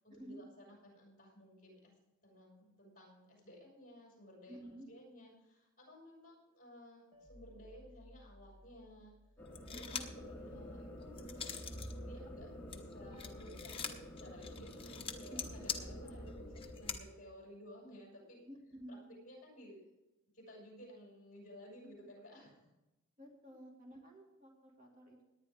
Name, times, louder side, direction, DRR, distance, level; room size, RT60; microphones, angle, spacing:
voice 1, 0.0-1.9 2.2-9.1 9.7-13.7 14.2-18.4 18.9-19.9 20.3-22.7, equal, 40° left, -3 dB, 6.0 m, -56 dB
voice 2, 4.5-4.9 9.7-10.0 15.3-15.4 18.5-19.1 21.8-21.9 23.2-25.2, right 1 dB, 40° right, 0 dB, 2.2 m, -52 dB
sound 1, 7.1-10.3, equal, 25° right, 1.6 m, -61 dB
sound 2, 9.4-17.0, equal, 10° left, 2.2 m, -48 dB
sound 3, 9.5-10.2 10.7-11.9 12.3-17.0, left 7 dB, 25° left, 1.0 m, -43 dB
18.5 x 10.5 x 3.7 m, 0.97 s
head